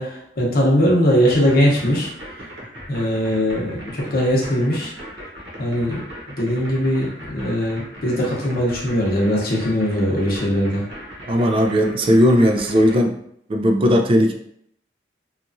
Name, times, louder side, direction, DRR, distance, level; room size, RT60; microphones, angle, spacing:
voice 1, 0.0-2.1 2.9-4.9 5.6-6.0 6.4-10.8, equal, 55° left, -3 dB, 0.8 m, -20 dB
sound 1, 1.1-13.0, equal, 75° right, 1.0 m, -37 dB
voice 2, 11.3-13.2 13.5-14.3, equal, 30° right, 3 dB, 0.3 m, -17 dB
2.9 x 2.4 x 2.5 m, 0.70 s
head